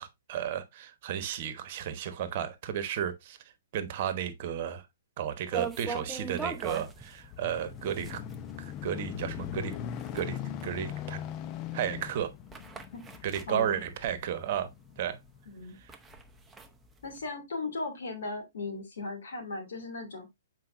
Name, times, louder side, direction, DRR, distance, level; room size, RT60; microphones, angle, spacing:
voice 1, 0.0-3.4 3.7-4.8 5.2-8.2 8.6-9.7 10.1-11.2 11.7-12.3 13.2-14.7 15.0-15.2 15.8-15.9, right 9 dB, 45° right, 1.1 m, -33 dB
sound 1, 5.5-14.6 15.0-15.1 15.5-17.3, right 5 dB, 10° right, 0.8 m, -41 dB
sound 2, 6.9-15.5 16.1-16.3, left 10 dB, 30° left, 0.7 m, -40 dB
voice 2, 13.5-13.8 15.5-15.8 17.0-20.3, left 3 dB, 65° left, 2.6 m, -37 dB
7.9 x 4.6 x 2.6 m
figure-of-eight pair, 120°, 0 cm